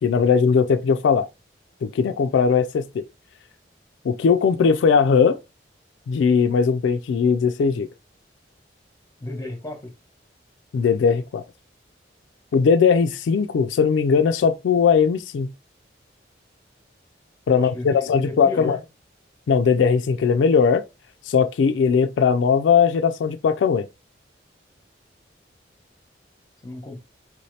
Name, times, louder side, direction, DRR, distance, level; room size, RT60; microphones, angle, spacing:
voice 1, 0.0-1.3 1.8-3.0 4.0-5.4 6.1-7.9 10.7-11.4 12.5-15.5 17.5-18.8 19.5-20.8 21.3-23.9, left 6 dB, 80° left, 0.3 m, -19 dB
voice 2, 9.2-9.9 17.5-18.8 26.6-27.0, left 1 dB, 20° left, 0.9 m, -34 dB
4.4 x 2.8 x 3.1 m
head